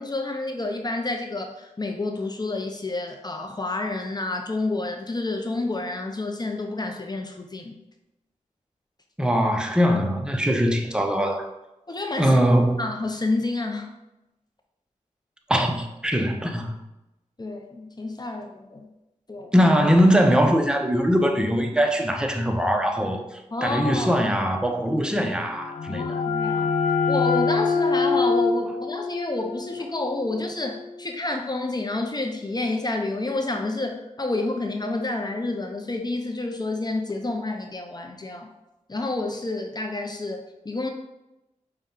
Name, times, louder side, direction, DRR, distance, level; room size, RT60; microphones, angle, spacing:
voice 1, 0.0-7.7 11.9-12.4 12.8-13.9 17.4-18.9 19.3-19.5 23.5-24.1 25.3-25.4 25.9-26.7 27.1-38.5 38.9-40.9, left 2 dB, 30° left, 0.6 m, -29 dB
voice 2, 9.2-11.5 12.2-12.8 15.5-16.8 19.5-26.2, equal, 5° right, 0.7 m, -21 dB
sound 1, 25.4-31.0, left 4 dB, 80° left, 0.4 m, -25 dB
5.3 x 2.3 x 3.7 m
cardioid pair, 45°, 13 cm